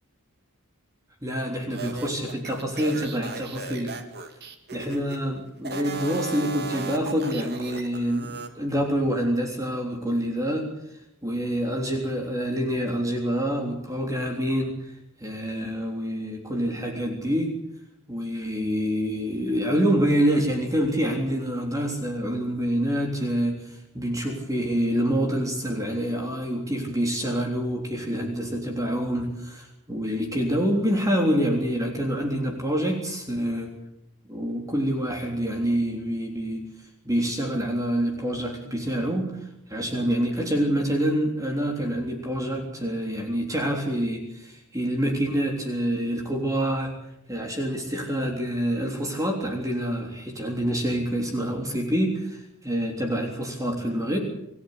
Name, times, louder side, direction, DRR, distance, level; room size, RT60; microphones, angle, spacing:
voice 1, 1.2-3.9 4.7-10.7 11.2-14.9 15.2-17.6 18.1-33.7 34.3-36.7 37.0-39.3 39.7-46.9 47.3-54.2, equal, 15° right, 2 dB, 3.5 m, -26 dB
sound 1, 1.7-5.2 5.6-8.5, right 3 dB, 50° right, 2.7 m, -36 dB
27.0 x 16.0 x 8.1 m, 0.82 s
head